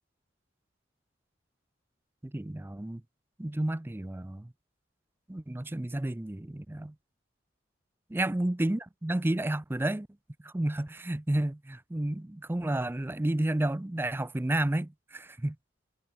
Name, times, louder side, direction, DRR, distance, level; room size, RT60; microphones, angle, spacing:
voice 1, 2.2-3.0 3.4-4.5 5.3-6.9 8.1-10.1 10.4-15.6, right 1 dB, 10° right, 0.4 m, -31 dB
head